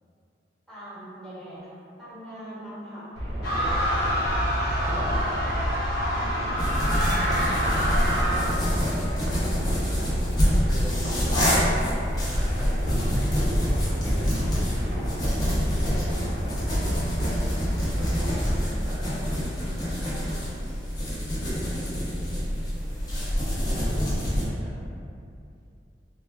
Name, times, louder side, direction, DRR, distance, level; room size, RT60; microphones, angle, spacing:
voice 1, 0.7-3.1 3.5-4.1 4.7-6.1 17.9-18.9 21.9-23.4, equal, ahead, -12 dB, 1.0 m, -42 dB
sound 1, 3.1-18.6, equal, 90° right, 0.8 m, -30 dB
sound 2, 3.4-8.4, equal, 55° left, 0.8 m, -27 dB
voice 2, 6.1-9.9 10.7-13.3 13.9-16.9 18.4-20.6 23.1-23.3 23.7-24.9, equal, 15° right, -11 dB, 0.3 m, -42 dB
sound 3, 6.6-24.4, equal, 20° left, 0.6 m, -27 dB
3.5 x 2.2 x 2.4 m, 2.5 s
head